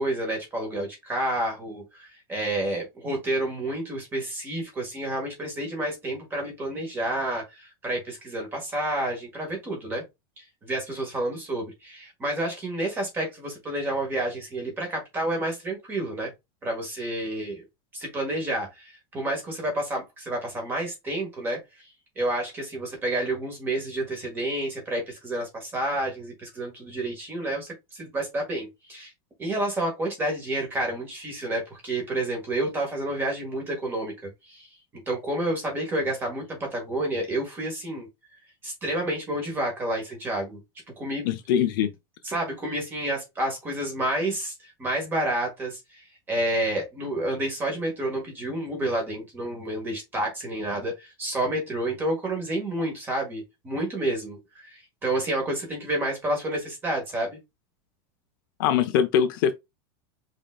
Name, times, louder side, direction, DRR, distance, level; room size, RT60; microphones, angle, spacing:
voice 1, 0.0-10.0 10.4-16.3 16.6-17.6 17.9-21.6 22.2-29.1 29.4-34.7 35.1-38.1 38.6-40.6 41.0-41.3 42.2-57.4, right 1 dB, 15° right, 1.7 m, -29 dB
voice 2, 41.2-41.9 58.6-59.5, left 8 dB, 55° left, 0.6 m, -22 dB
5.2 x 3.7 x 2.3 m
supercardioid pair, 175°, 13 cm